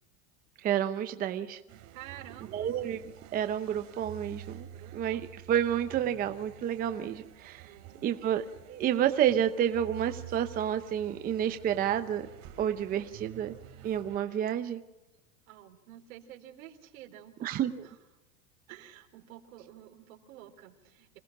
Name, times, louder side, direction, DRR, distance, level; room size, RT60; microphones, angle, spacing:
voice 1, 0.6-1.6 2.5-3.0 3.3-4.7 4.9-7.7 8.0-8.4 8.7-12.3 12.6-13.5 13.8-14.8 17.4-17.7, right 10 dB, 20° right, 8 dB, 0.8 m, -29 dB
sound 1, 1.7-14.2, right 11 dB, 40° right, 3.2 m, -49 dB
voice 2, 1.9-2.8 4.7-5.2 7.6-8.2 15.5-17.5 17.8-18.0 18.7-21.2, right 12 dB, 70° right, 3 dB, 3.9 m, -50 dB
26.5 x 18.0 x 6.0 m, 0.97 s
supercardioid pair, 160°, 43 cm